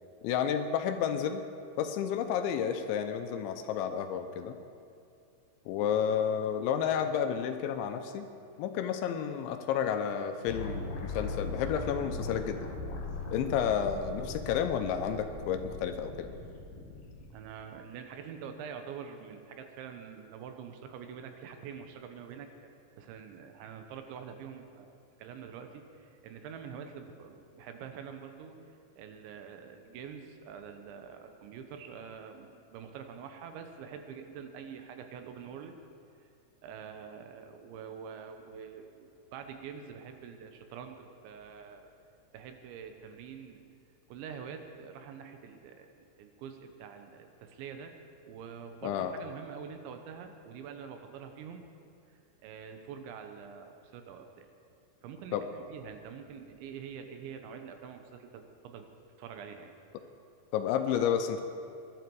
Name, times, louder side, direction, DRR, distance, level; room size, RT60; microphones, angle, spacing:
voice 1, 0.2-1.5 1.8-4.6 5.7-8.3 8.6-12.7 13.3-16.3 48.8-49.1 55.3-55.4 60.5-61.4, left 8 dB, 80° left, 8 dB, 2.9 m, -31 dB
sound 1, 10.5-17.3, left 2 dB, 60° left, 3.0 m, -39 dB
voice 2, 17.3-22.5 23.0-28.6 29.0-35.7 36.6-41.9 42.3-43.6 44.1-47.9 48.3-51.6 52.4-54.5 55.0-58.9 59.2-59.7, right 7 dB, 75° right, 6 dB, 3.1 m, -45 dB
21.0 x 11.5 x 4.7 m, 2.5 s
omnidirectional pair, 5.5 m